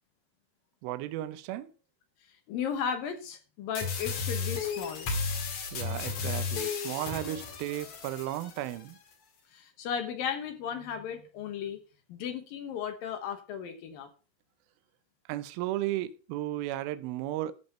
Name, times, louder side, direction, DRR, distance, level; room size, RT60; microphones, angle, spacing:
voice 1, 0.8-1.7 5.7-9.0 15.3-17.5, right 14 dB, 85° right, 2.1 m, -34 dB
voice 2, 2.5-5.1 9.5-11.8 12.1-14.1, left 7 dB, 65° left, 2.4 m, -35 dB
sound 1, 3.7-8.8, left 5 dB, 50° left, 2.7 m, -34 dB
13.5 x 5.5 x 5.5 m
omnidirectional pair, 5.3 m